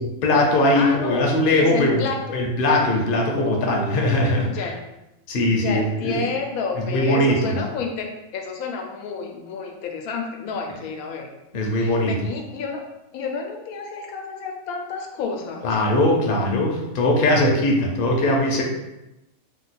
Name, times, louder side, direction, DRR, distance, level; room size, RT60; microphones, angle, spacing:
voice 1, 0.0-2.1 2.3-4.6 5.3-6.2 6.9-7.6 11.5-12.2 15.6-18.6, left 1 dB, 55° left, 0 dB, 0.7 m, -20 dB
voice 2, 0.7-1.3 1.6-2.4 3.4-4.8 5.6-11.3 11.7-12.8 13.1-15.7, left 4 dB, 85° left, 3 dB, 1.0 m, -30 dB
2.9 x 2.2 x 4.0 m, 0.95 s
omnidirectional pair, 1.5 m